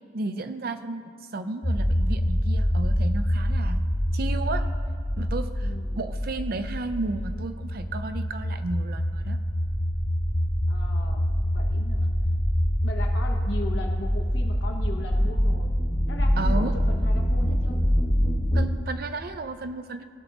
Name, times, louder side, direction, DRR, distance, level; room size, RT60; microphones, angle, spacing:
voice 1, 0.1-3.8 4.1-4.6 5.2-5.7 6.0-9.4 16.4-16.7 18.5-20.0, right 3 dB, 55° right, 9 dB, 0.5 m, -33 dB
sound 1, 1.6-18.7, equal, 25° left, 0.8 m, -25 dB
voice 2, 5.6-6.1 10.7-12.1 12.8-15.7 16.1-17.8, left 1 dB, 80° left, 2 dB, 1.1 m, -38 dB
18.0 x 6.1 x 4.0 m, 2.1 s
head